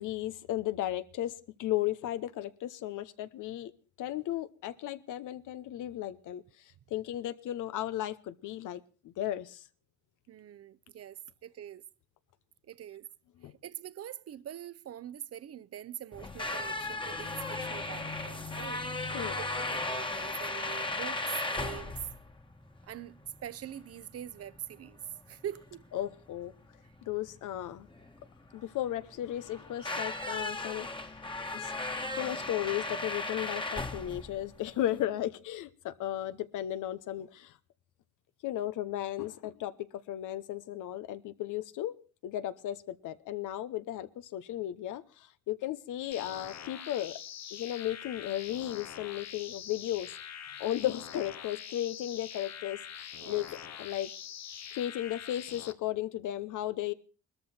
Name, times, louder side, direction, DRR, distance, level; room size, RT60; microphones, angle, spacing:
voice 1, 0.0-1.3 1.6-3.7 4.0-6.4 6.9-9.6 13.4-13.5 19.1-19.4 25.9-26.5 27.1-27.9 28.5-31.1 31.6-31.7 32.1-37.5 38.4-41.9 42.2-47.2 47.5-50.1 50.6-53.5 53.8-54.1 54.7-56.9, left 13 dB, 85° left, 1.0 m, -35 dB
voice 2, 10.3-11.9 12.6-13.1 13.4-22.1 22.8-25.9 26.8-26.9 50.5-50.6 53.2-53.5, right 11 dB, 55° right, 0.8 m, -44 dB
sound 1, 16.1-35.0, left 2 dB, 15° left, 1.4 m, -37 dB
sound 2, 46.1-55.7, left 9 dB, 60° left, 1.2 m, -44 dB
19.5 x 13.5 x 4.3 m
cardioid pair, 90°, 30 cm